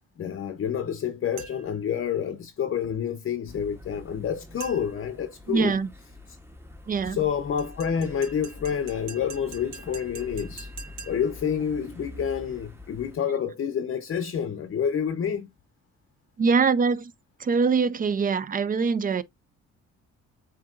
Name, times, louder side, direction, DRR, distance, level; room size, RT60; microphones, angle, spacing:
voice 1, 0.2-5.7 7.0-10.7 11.1-15.5, left 8 dB, 45° left, 0.6 m, -28 dB
sound 1, 1.4-1.8 4.6-5.1 7.6-11.4, right 6 dB, 80° right, 1.3 m, -45 dB
sound 2, 3.5-13.2, left 1 dB, 10° right, 0.9 m, -45 dB
voice 2, 5.5-5.9 6.9-7.2 16.4-17.1 17.4-19.2, right 5 dB, 30° right, 0.4 m, -23 dB
7.4 x 2.8 x 2.4 m
cardioid pair, 90°, 30 cm